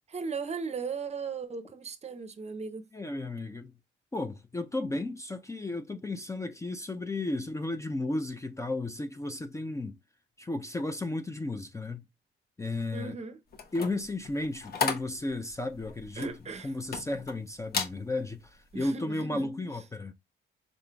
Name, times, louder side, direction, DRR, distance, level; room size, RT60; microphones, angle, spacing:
voice 1, 0.1-2.9 12.9-13.4 16.2-16.7 18.7-19.5, right 5 dB, 35° right, 0.6 m, -37 dB
voice 2, 2.9-3.7 4.1-10.0 10.4-12.0 12.6-13.2 13.7-16.3 16.6-20.1, left 2 dB, 15° left, 0.4 m, -34 dB
sound 1, 13.5-17.4 17.7-18.0 18.5-18.7, left 6 dB, 50° left, 0.9 m, -34 dB
5.0 x 3.6 x 2.2 m
cardioid pair, 90°, 20 cm